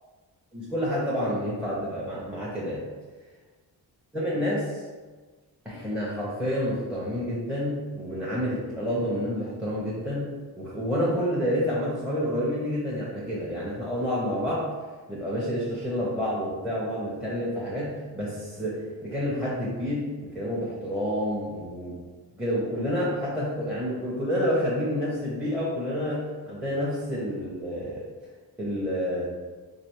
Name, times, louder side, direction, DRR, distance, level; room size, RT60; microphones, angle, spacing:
voice 1, 0.5-2.8 4.1-4.8 5.6-10.3 10.6-14.7 15.1-20.1 20.3-22.0 22.4-28.0 28.6-29.2, equal, 5° right, -8 dB, 0.7 m, -29 dB
3.3 x 2.6 x 3.0 m, 1.3 s
cardioid pair, 95°, 39 cm